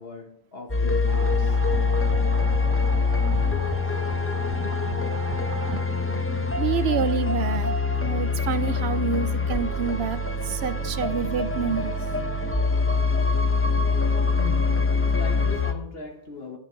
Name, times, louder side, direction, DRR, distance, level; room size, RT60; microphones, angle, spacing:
voice 1, 0.0-1.6 13.6-13.7 14.2-16.6, left 5 dB, 60° left, 1.4 m, -39 dB
sound 1, 0.7-15.7, left 4 dB, 15° left, 0.7 m, -24 dB
sound 2, 1.1-6.2, right 7 dB, 45° right, 0.4 m, -37 dB
voice 2, 4.6-5.3 5.7-5.8 6.1-6.3 6.6-7.7 8.0-12.0 13.0-13.1, right 7 dB, 70° right, 0.9 m, -28 dB
9.5 x 9.1 x 4.4 m
omnidirectional pair, 1.1 m